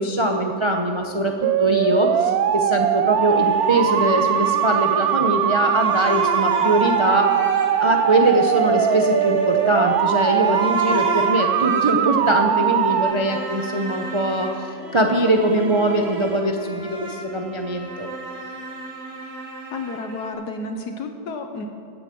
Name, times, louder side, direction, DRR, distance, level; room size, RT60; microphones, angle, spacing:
voice 1, 0.0-1.3 1.6-7.3 7.8-18.1, right 1 dB, 25° right, 2 dB, 0.6 m, -22 dB
sound 1, 1.4-13.1, right 9 dB, 70° right, 1.1 m, -21 dB
sound 2, 3.2-20.3, right 1 dB, 40° right, 1.9 m, -34 dB
voice 2, 19.7-21.7, left 3 dB, 80° left, 5 dB, 1.6 m, -31 dB
15.0 x 9.0 x 7.7 m, 2.3 s
omnidirectional pair, 1.7 m